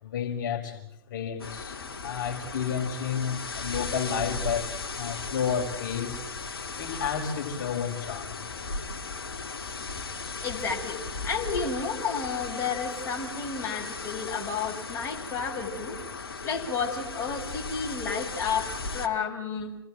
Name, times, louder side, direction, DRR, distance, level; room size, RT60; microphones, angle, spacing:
voice 1, 0.0-6.2 6.8-8.4, left 7 dB, 55° left, 3 dB, 5.6 m, -31 dB
sound 1, 1.4-19.1, left 4 dB, 75° left, 2.9 m, -37 dB
voice 2, 10.4-16.0 16.4-19.8, left 5 dB, 20° left, 0 dB, 6.6 m, -31 dB
28.5 x 21.0 x 7.9 m, 0.74 s
figure-of-eight pair, 110°, 13 cm